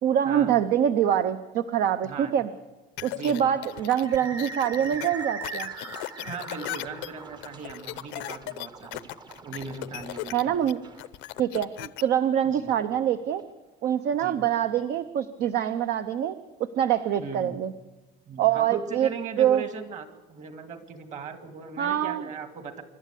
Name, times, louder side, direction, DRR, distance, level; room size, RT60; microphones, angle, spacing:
voice 1, 0.0-2.5 3.0-5.7 10.3-10.8 11.4-13.4 13.8-16.3 16.8-17.7 18.4-19.1 19.4-19.6 21.8-22.2, right 10 dB, 55° right, 10 dB, 0.8 m, -25 dB
voice 2, 2.0-2.4 3.0-3.5 6.2-9.0 9.4-10.6 12.5-12.7 14.2-14.4 17.2-17.6 18.3-22.8, right 5 dB, 40° right, 8 dB, 2.2 m, -38 dB
sound 1, 3.0-12.0, left 18 dB, 75° left, 0.7 m, -37 dB
sound 2, 3.4-12.8, right 4 dB, 25° right, 0.9 m, -41 dB
26.5 x 12.0 x 8.3 m, 1.1 s
cardioid pair, 150°, 19 cm